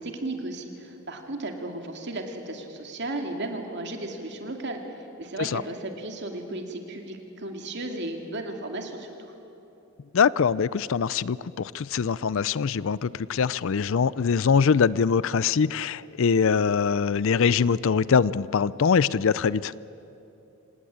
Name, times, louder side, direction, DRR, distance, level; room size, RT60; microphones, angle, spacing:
voice 1, 0.0-9.1, right 2 dB, 50° right, 4 dB, 2.5 m, -35 dB
voice 2, 10.1-19.7, left 6 dB, 60° left, 20 dB, 0.4 m, -23 dB
26.5 x 18.0 x 8.8 m, 3.0 s
head